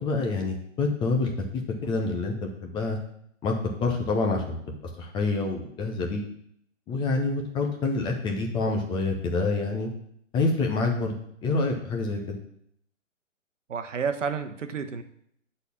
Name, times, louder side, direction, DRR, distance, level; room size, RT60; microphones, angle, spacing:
voice 1, 0.0-1.3 1.8-3.0 3.4-3.5 3.8-4.6 5.0-6.2 6.9-9.9 10.3-11.2 11.4-12.4, left 3 dB, 10° left, 2 dB, 0.7 m, -27 dB
voice 2, 13.7-15.0, right 6 dB, 70° right, 9 dB, 1.0 m, -30 dB
8.0 x 4.3 x 7.1 m, 0.69 s
figure-of-eight pair, 130°, 39 cm